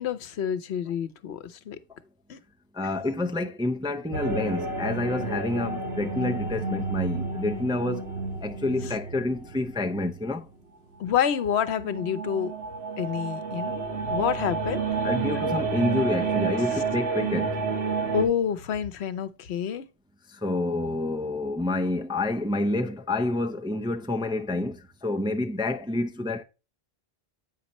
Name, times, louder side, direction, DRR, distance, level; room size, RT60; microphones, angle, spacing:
voice 1, 0.0-1.8 2.3-2.4 8.8-8.9 11.0-12.5 13.0-14.8 18.1-19.9, left 8 dB, 85° left, 1.0 m, -28 dB
voice 2, 2.7-8.1 8.4-10.5 15.0-17.6 20.3-26.4, left 2 dB, 5° right, 0.3 m, -28 dB
sound 1, 4.1-10.4 11.1-18.3, right 4 dB, 75° right, 1.4 m, -30 dB
8.4 x 5.3 x 2.9 m
omnidirectional pair, 1.1 m